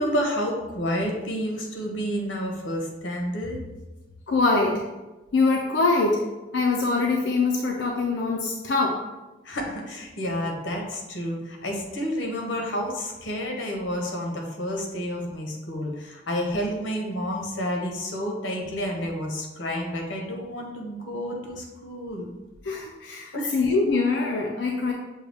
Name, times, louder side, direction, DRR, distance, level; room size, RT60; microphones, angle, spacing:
voice 1, 0.0-3.6 9.4-22.3 23.3-23.6, equal, 85° left, 1 dB, 1.0 m, -30 dB
voice 2, 4.3-4.9 5.3-6.3 6.5-9.1 22.6-24.9, left 3 dB, 70° left, 0 dB, 0.5 m, -23 dB
6.5 x 2.3 x 3.4 m, 1.1 s
head